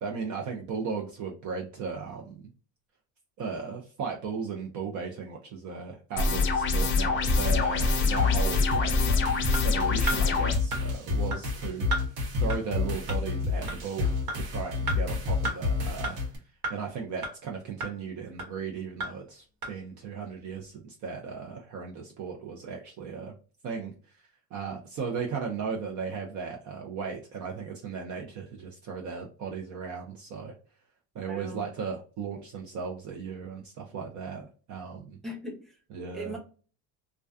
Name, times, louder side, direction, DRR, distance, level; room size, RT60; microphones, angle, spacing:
voice 1, 0.0-2.5 3.4-12.1 12.4-16.2 16.7-23.4 23.6-23.9 24.5-30.5 31.1-35.2 35.9-36.4, right 5 dB, 50° right, 1 dB, 0.5 m, -36 dB
sound 1, 6.2-10.6, left 3 dB, 30° left, 0.4 m, -25 dB
sound 2, 7.2-16.4, left 4 dB, 85° right, 1.0 m, -29 dB
sound 3, 9.5-9.6 10.1-10.2 10.7-10.8 11.3-11.4 11.9-12.0 12.5-12.6 13.1-13.2 13.7-13.8 14.3-14.4 14.9-15.0 15.4-15.6 16.0-16.1 16.6-16.7 17.2-17.3 17.8-17.9 18.4-18.5 19.0-19.1 19.6-19.7, right 2 dB, 70° right, 1.3 m, -31 dB
voice 2, 31.2-31.6 35.2-35.8 36.1-36.4, right 1 dB, ahead, -2 dB, 0.7 m, -39 dB
2.3 x 2.2 x 2.4 m, 0.38 s
cardioid pair, 120°, 39 cm